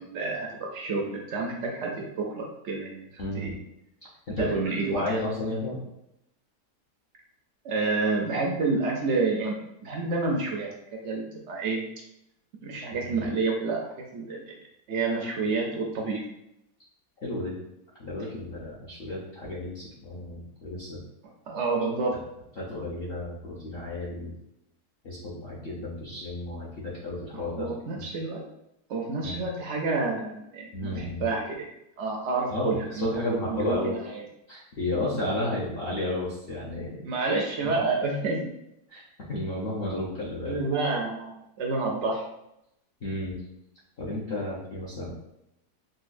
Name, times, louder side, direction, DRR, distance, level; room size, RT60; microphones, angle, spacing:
voice 1, 0.0-3.5 4.4-5.0 7.6-11.8 12.6-14.6 14.9-16.2 21.5-22.1 27.6-28.4 28.9-31.7 32.0-33.8 37.0-38.4 40.4-42.2, right 3 dB, 70° right, 0 dB, 0.6 m, -29 dB
voice 2, 3.2-3.5 4.3-4.5 4.9-5.8 13.1-13.3 17.2-17.5 18.0-21.0 22.6-24.3 25.0-27.7 29.2-29.5 30.7-31.3 32.5-33.9 34.5-37.0 37.6-37.7 38.9-39.0 39.3-40.6 43.0-43.4 44.0-45.1, left 1 dB, 55° left, -7 dB, 0.7 m, -32 dB
3.8 x 2.2 x 2.5 m, 0.83 s
omnidirectional pair, 1.7 m